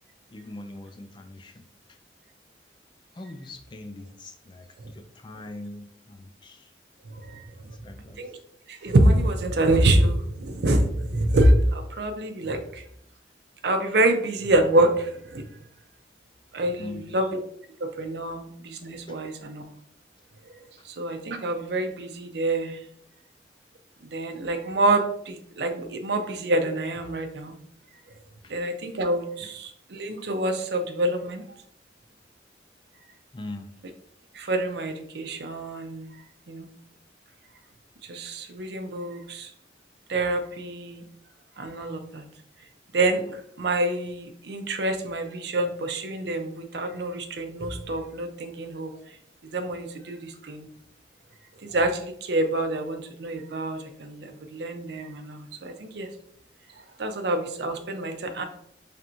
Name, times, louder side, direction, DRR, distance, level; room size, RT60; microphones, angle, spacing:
voice 1, 0.3-1.6 3.1-6.7 7.6-8.2 16.8-17.2 18.3-18.4 19.1-19.3 28.4-28.5 33.3-33.7, left 2 dB, 25° left, 7 dB, 0.3 m, -42 dB
voice 2, 7.1-7.4 8.2-8.4 8.7-12.8 13.6-15.5 16.5-17.3 17.8-19.6 20.4-20.5 20.8-22.8 24.0-27.5 28.5-31.4 34.3-36.2 36.5-36.7 38.0-39.5 40.1-41.0 41.6-42.3 42.9-48.9 49.4-50.7 51.6-56.1 57.0-58.4, right 1 dB, 65° right, 6 dB, 0.6 m, -26 dB
4.3 x 3.4 x 2.5 m, 0.68 s
head